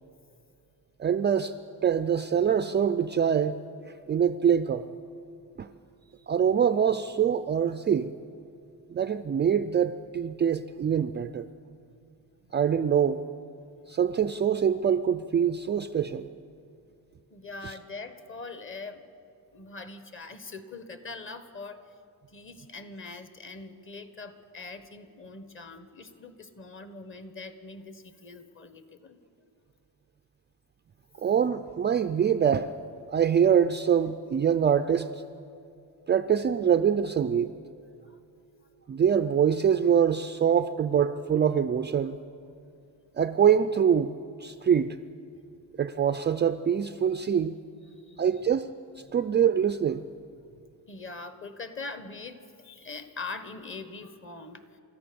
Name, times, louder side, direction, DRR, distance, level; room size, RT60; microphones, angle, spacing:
voice 1, 1.0-1.5 1.8-3.6 4.1-4.9 5.6-5.7 6.3-8.1 8.9-11.5 12.5-13.2 13.9-16.3 17.6-17.7 31.2-32.7 33.1-35.2 36.1-37.5 38.9-42.2 43.2-44.2 44.4-45.0 45.8-47.6 48.2-48.7 49.1-50.0, right 8 dB, 25° right, 10 dB, 0.4 m, -24 dB
voice 2, 17.3-19.0 19.5-21.9 22.3-29.2 38.0-38.2 47.8-48.3 49.1-49.2 50.5-50.6 50.9-54.8, left 3 dB, 30° left, 10 dB, 1.3 m, -42 dB
28.5 x 14.0 x 6.9 m, 2.5 s
cardioid pair, 140°, 41 cm